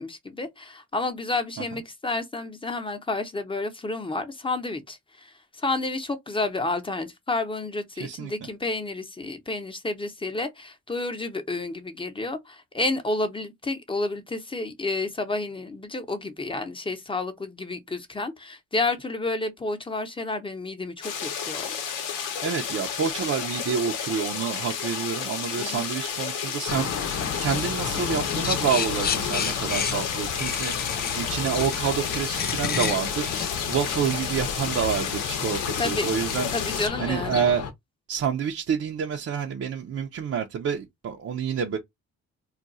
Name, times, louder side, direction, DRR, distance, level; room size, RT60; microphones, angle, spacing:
voice 1, 0.0-21.7 25.6-25.8 35.8-36.1 36.5-37.4, left 2 dB, 15° left, 0.8 m, -30 dB
voice 2, 8.0-8.5 22.4-27.1 27.4-33.3 33.7-36.5 37.0-37.7 38.1-41.8, right 7 dB, 50° right, 0.6 m, -28 dB
sound 1, 21.0-36.9, left 7 dB, 90° left, 0.9 m, -31 dB
sound 2, 26.7-37.7, left 7 dB, 55° left, 0.8 m, -33 dB
sound 3, 28.4-34.6, left 7 dB, 30° left, 0.4 m, -31 dB
2.4 x 2.3 x 3.9 m
cardioid pair, 90°, 30 cm